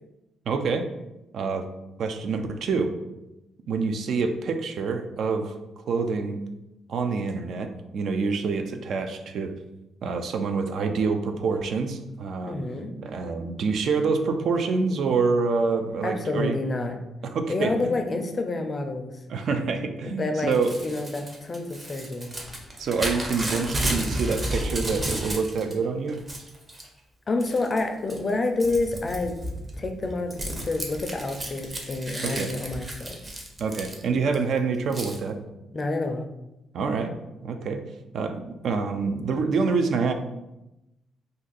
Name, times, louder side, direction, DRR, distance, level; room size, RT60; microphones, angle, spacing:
voice 1, 0.5-0.9 1.3-1.6 2.0-2.9 3.7-5.6 5.9-6.4 6.9-9.5 10.0-12.5 13.0-16.6 17.3-18.0 19.3-20.8 22.8-26.2 32.2-32.5 33.6-35.4 36.7-37.1 37.4-37.8 38.1-40.1, right 4 dB, 65° right, 6 dB, 0.4 m, -26 dB
voice 2, 12.4-12.9 16.0-17.0 17.5-19.1 20.0-22.3 27.3-29.3 29.8-33.2 35.7-36.3, left 2 dB, 35° left, 5 dB, 0.4 m, -28 dB
Crumpling crinkling / Tearing, 20.5-25.7 26.1-26.9 27.4-27.8 28.1-34.3 34.9-35.2, right 1 dB, 25° right, 0.7 m, -32 dB
2.5 x 2.5 x 3.9 m, 0.95 s
cardioid pair, 90°, 0 cm